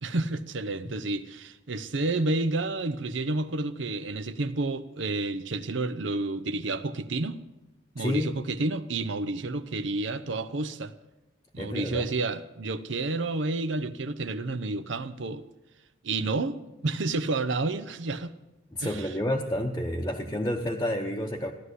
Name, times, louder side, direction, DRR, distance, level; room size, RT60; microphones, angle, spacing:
voice 1, 0.0-7.4 7.9-10.9 11.5-15.4 16.0-18.3 18.8-19.1, right 2 dB, 65° right, 11 dB, 0.7 m, -30 dB
voice 2, 8.0-8.4 11.6-12.1 18.7-21.5, left 1 dB, 15° left, -1 dB, 0.9 m, -30 dB
15.0 x 11.0 x 8.2 m, 0.98 s
head